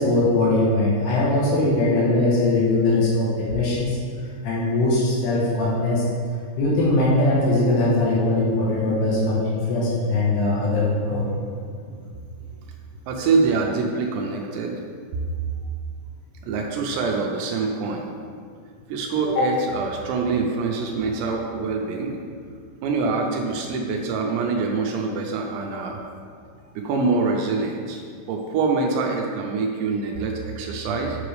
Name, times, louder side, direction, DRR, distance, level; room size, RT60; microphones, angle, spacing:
voice 1, 0.0-4.0 4.4-6.0 6.6-11.3 19.3-19.5, left 2 dB, 70° left, -6 dB, 3.0 m, -21 dB
voice 2, 13.1-14.7 16.4-18.1 18.9-22.2 22.8-26.0 26.8-28.0 28.3-31.2, right 4 dB, 80° right, 1 dB, 2.7 m, -25 dB
7.7 x 5.8 x 3.2 m, 2.1 s
omnidirectional pair, 5.3 m